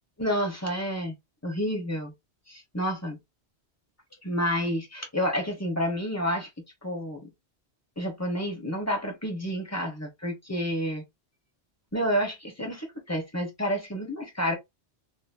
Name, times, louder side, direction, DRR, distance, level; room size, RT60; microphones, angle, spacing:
voice 1, 0.2-1.1 1.4-2.1 2.5-3.2 4.2-6.5 6.8-7.3 8.0-11.0 11.9-14.5, equal, 15° left, 1.0 m, -29 dB
2.9 x 2.7 x 2.3 m
omnidirectional pair, 1.2 m